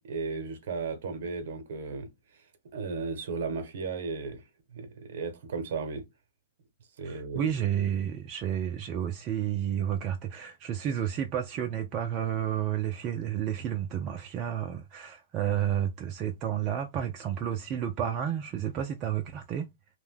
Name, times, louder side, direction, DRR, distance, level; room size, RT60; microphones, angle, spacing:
voice 1, 0.0-2.1 2.7-4.4 4.7-6.0 7.0-7.5, right 4 dB, 65° right, 0.8 m, -35 dB
voice 2, 7.0-19.7, right 9 dB, 35° right, 0.4 m, -31 dB
2.5 x 2.2 x 3.5 m
hypercardioid pair, 110°, 0 cm